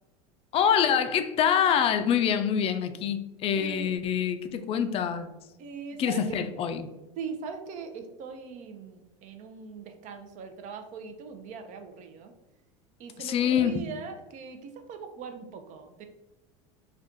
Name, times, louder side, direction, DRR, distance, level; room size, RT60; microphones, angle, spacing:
voice 1, 0.5-5.3 6.0-6.9 13.2-13.9, left 8 dB, 35° left, 9 dB, 0.3 m, -25 dB
voice 2, 3.6-4.0 5.6-6.4 7.2-12.3 13.0-16.1, right 5 dB, 50° right, 6 dB, 0.5 m, -40 dB
2.5 x 2.3 x 3.6 m, 1.0 s
hypercardioid pair, 100°, 16 cm